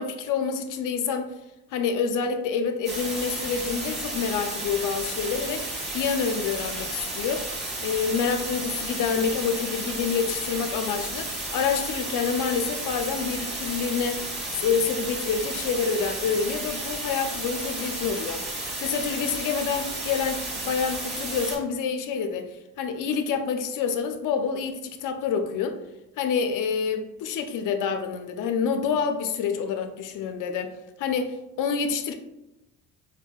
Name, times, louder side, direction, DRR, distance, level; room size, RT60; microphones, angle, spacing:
voice 1, 0.0-1.3 1.7-7.5 7.8-14.3 14.5-18.4 18.8-25.8 26.2-30.7 31.0-32.1, left 6 dB, 50° left, 7 dB, 0.5 m, -27 dB
sound 1, 2.8-21.6, right 1 dB, 25° right, 1.2 m, -33 dB
4.3 x 2.2 x 2.3 m, 0.95 s
supercardioid pair, 80°, 40 cm